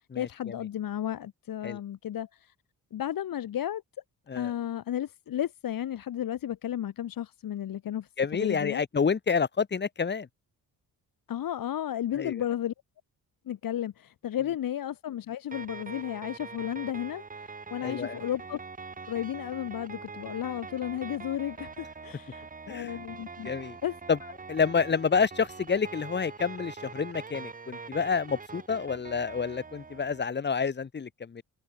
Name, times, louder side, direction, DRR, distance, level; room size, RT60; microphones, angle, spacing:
voice 1, 0.2-2.5 2.9-3.8 4.3-8.8 11.3-12.7 13.4-18.6 19.1-23.5 23.8-24.0, left 11 dB, 65° left, 1.2 m, -33 dB
voice 2, 8.2-10.3 12.1-12.3 17.8-18.2 22.7-22.9 23.4-23.8 24.1-24.2 24.5-31.4, left 5 dB, 30° left, 1.0 m, -28 dB
sound 1, 15.5-30.2, right 4 dB, 20° right, 0.9 m, -43 dB
cardioid pair, 85°, 37 cm